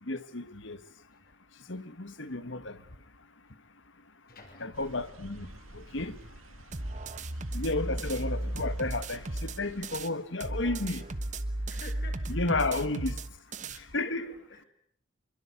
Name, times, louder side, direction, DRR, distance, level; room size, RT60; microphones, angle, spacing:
voice 1, 0.0-0.8 1.7-2.8 4.6-6.2 7.5-11.1 12.3-13.2 13.6-14.3, left 2 dB, 65° left, 1.7 m, -33 dB
voice 2, 4.3-4.8 6.7-7.0 11.7-12.2 13.7-14.7, left 2 dB, 45° left, 6.1 m, -50 dB
sound 1, 4.7-10.1, right 1 dB, 80° right, 2.4 m, -50 dB
sound 2, 6.7-10.1 10.4-13.8, right 1 dB, 35° right, 1.3 m, -35 dB
26.5 x 23.5 x 8.4 m
head